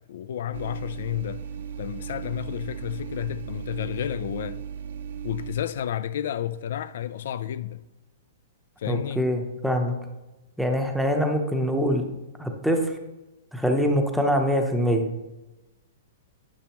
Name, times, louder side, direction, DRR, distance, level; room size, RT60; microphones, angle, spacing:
voice 1, 0.1-1.4 1.8-4.6 5.2-7.8 8.8-9.2, left 10 dB, 65° left, 0.3 m, -31 dB
sound 1, 0.5-5.6, right 8 dB, 70° right, 0.6 m, -36 dB
voice 2, 8.9-10.0 10.6-12.0 12.4-12.9 13.5-15.1, equal, ahead, 0.7 m, -24 dB
10.5 x 6.2 x 3.0 m
hypercardioid pair, 155°, 0 cm